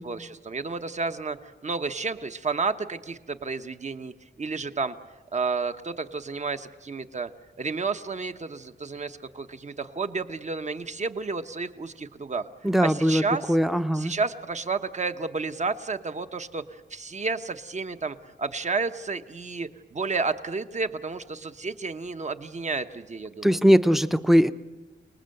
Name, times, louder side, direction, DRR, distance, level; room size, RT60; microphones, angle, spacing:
voice 1, 0.0-1.4 1.6-4.1 4.4-4.9 5.3-7.3 7.6-12.5 12.8-13.6 13.9-23.6, right 4 dB, 40° right, 9 dB, 1.1 m, -31 dB
voice 2, 12.6-13.2 13.5-14.1 23.4-24.5, equal, ahead, 12 dB, 0.7 m, -20 dB
28.5 x 20.0 x 7.9 m, 1.2 s
wide cardioid pair, 135°, 19 cm